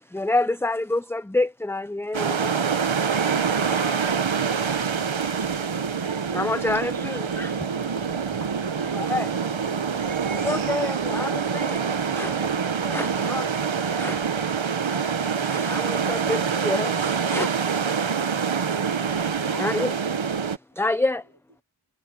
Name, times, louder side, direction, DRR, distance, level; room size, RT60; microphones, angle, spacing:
voice 1, 0.1-2.7 6.3-7.6 8.9-9.3 10.3-11.8 12.1-13.5 14.0-14.3 15.4-17.5 19.3-19.9 20.4-21.2, left 2 dB, 5° left, 0.4 m, -28 dB
sound 1, 2.1-20.6, right 6 dB, 75° right, 1.0 m, -26 dB
voice 2, 3.3-4.9, left 5 dB, 65° left, 3.7 m, -45 dB
Liquid, 4.5-9.0 9.7-9.8, right 1 dB, 35° right, 7.1 m, -48 dB
sound 2, 5.2-13.2, left 5 dB, 80° left, 4.2 m, -49 dB
voice 3, 19.3-20.1, right 1 dB, 50° right, 5.9 m, -41 dB
wide cardioid pair, 45°, 47 cm